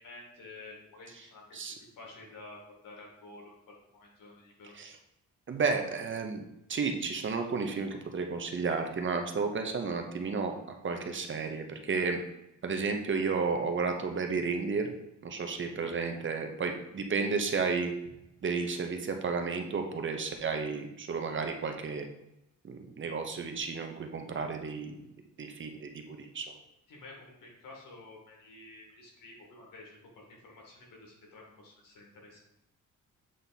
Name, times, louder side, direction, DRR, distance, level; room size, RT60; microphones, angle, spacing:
voice 1, 0.0-2.6 2.8-4.7 26.9-32.4, left 2 dB, 85° left, -1 dB, 2.1 m, -51 dB
voice 2, 5.5-6.4 6.7-12.2 12.6-14.9 15.2-17.9 18.4-22.1 22.6-25.0 25.4-26.5, right 4 dB, 40° right, 4 dB, 0.7 m, -32 dB
7.6 x 3.4 x 4.1 m, 0.86 s
cardioid pair, 135°, 32 cm